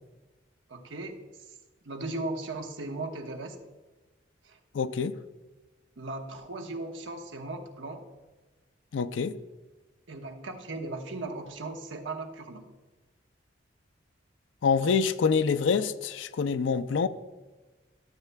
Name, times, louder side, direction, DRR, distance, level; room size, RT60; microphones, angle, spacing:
voice 1, 0.7-1.2 1.8-3.6 4.4-4.6 6.0-8.1 10.1-12.7, right 2 dB, 85° right, 4 dB, 1.0 m, -37 dB
voice 2, 4.7-5.2 8.9-9.4 14.6-17.1, left 5 dB, 80° left, 13 dB, 0.4 m, -26 dB
12.5 x 8.1 x 2.2 m, 1.2 s
head